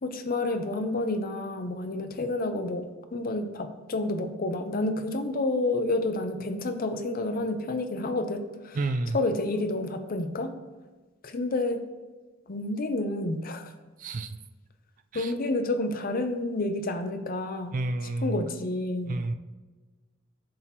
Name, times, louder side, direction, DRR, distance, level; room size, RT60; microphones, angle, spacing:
voice 1, 0.0-8.8 9.1-10.5 11.2-11.8 12.5-13.7 15.1-17.8 18.2-19.3, left 2 dB, 45° left, 8 dB, 0.6 m, -29 dB
voice 2, 8.7-9.2 14.0-14.4 15.1-15.3 17.7-18.4 19.1-19.3, right 2 dB, 40° right, 9 dB, 0.4 m, -30 dB
7.5 x 2.9 x 5.8 m, 1.3 s
head